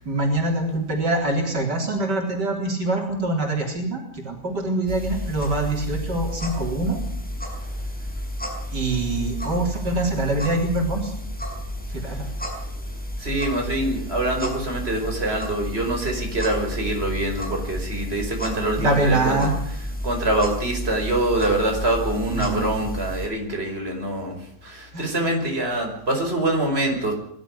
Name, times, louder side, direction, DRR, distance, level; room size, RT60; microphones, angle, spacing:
voice 1, 0.1-7.0 8.7-11.1 11.9-12.2 18.8-19.5 22.3-22.7 24.9-25.1, right 2 dB, 80° right, 1 dB, 4.5 m, -24 dB
sound 1, 4.9-23.3, equal, 5° left, 5.7 m, -31 dB
voice 2, 13.2-19.4 20.0-24.4 24.6-27.1, right 1 dB, 35° right, 2 dB, 5.5 m, -25 dB
23.5 x 13.0 x 9.8 m, 0.68 s
omnidirectional pair, 1.8 m